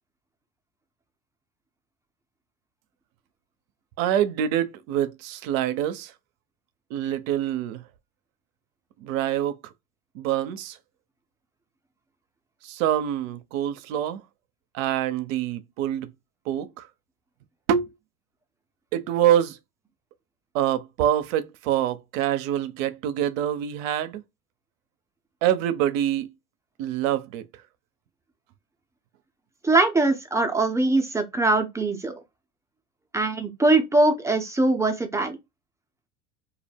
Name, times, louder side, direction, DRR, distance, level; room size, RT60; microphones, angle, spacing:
voice 1, 4.0-6.1 6.9-7.8 9.0-9.6 10.1-10.8 12.6-14.2 14.7-16.1 16.5-16.9 17.7-17.9 18.9-19.6 20.5-24.2 25.4-26.3 26.8-27.5, right 11 dB, 70° right, 0.6 m, -25 dB
voice 2, 29.6-32.1 33.1-35.4, right 2 dB, 5° right, 0.5 m, -22 dB
2.3 x 2.1 x 3.2 m
hypercardioid pair, 80°, 42 cm